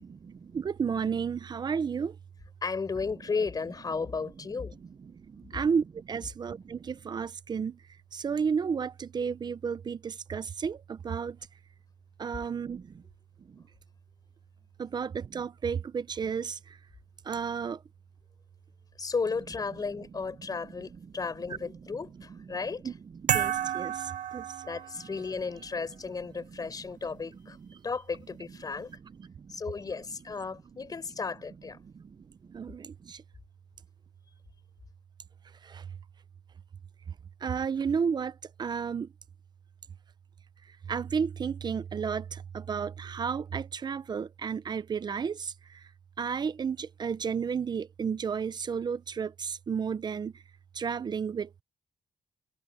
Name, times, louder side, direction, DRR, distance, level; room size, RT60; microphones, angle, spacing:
voice 1, 0.0-2.2 5.0-7.8 8.1-11.4 12.2-13.0 13.4-13.7 14.8-16.8 17.2-17.8 21.5-21.8 22.3-22.6 22.8-24.6 26.4-26.7 27.6-27.8 28.9-29.6 31.8-33.2 35.6-36.0 37.4-39.1 40.7-45.9 46.2-50.4 50.7-51.6, right 6 dB, 35° right, 0.6 m, -33 dB
voice 2, 2.6-4.8 19.0-22.8 24.6-27.6 27.8-28.9 29.5-31.8, left 4 dB, 30° left, 4.6 m, -34 dB
sound 1, 23.3-25.2, right 10 dB, 90° right, 1.5 m, -30 dB
wide cardioid pair, 165°, 13 cm